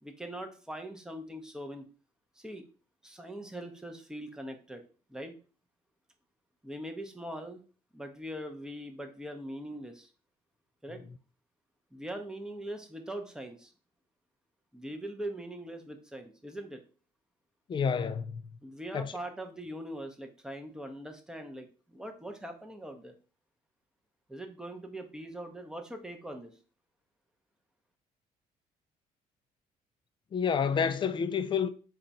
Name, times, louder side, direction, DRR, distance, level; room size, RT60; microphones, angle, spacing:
voice 1, 0.0-1.9 2.4-2.6 3.0-4.8 5.1-5.3 6.6-7.6 7.9-10.1 10.8-11.0 11.9-13.7 14.7-16.8 18.6-23.1 24.3-26.5, right 1 dB, 5° right, 0.7 m, -41 dB
voice 2, 17.7-18.4 18.9-19.1 30.3-31.7, left 6 dB, 35° left, 0.4 m, -29 dB
3.8 x 2.3 x 4.0 m
cardioid pair, 95°, 15 cm